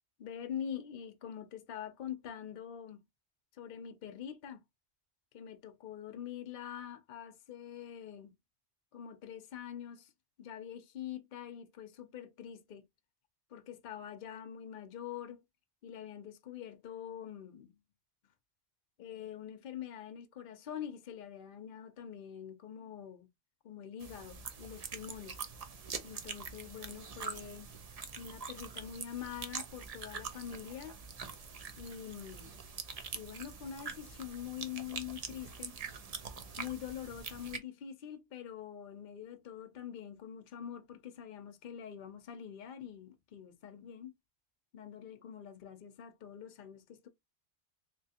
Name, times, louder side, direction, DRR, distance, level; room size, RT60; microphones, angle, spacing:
voice 1, 0.2-3.0 3.5-4.6 5.3-8.3 8.9-10.1 10.4-12.8 13.5-15.4 15.8-17.8 19.0-23.3 23.6-25.4 26.0-27.7 28.2-30.9 31.8-32.5 33.1-35.8 36.6-44.1 44.7-47.1, left 9 dB, 55° left, 0.7 m, -45 dB
sound 1, 24.0-37.6, right 5 dB, 50° right, 0.5 m, -44 dB
3.2 x 2.9 x 2.8 m
omnidirectional pair, 1.2 m